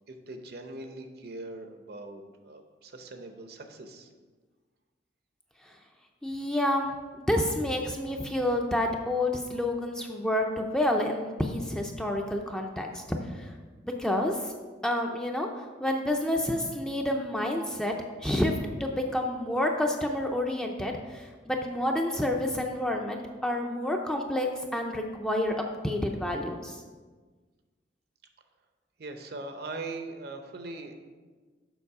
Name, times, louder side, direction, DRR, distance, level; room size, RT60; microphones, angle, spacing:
voice 1, 0.1-4.1 29.0-31.0, right 2 dB, 55° right, 6 dB, 0.8 m, -41 dB
voice 2, 6.2-13.5 13.8-14.5 14.8-17.9 18.2-26.8, left 1 dB, 5° left, 1 dB, 0.5 m, -29 dB
7.1 x 6.1 x 4.8 m, 1.4 s
head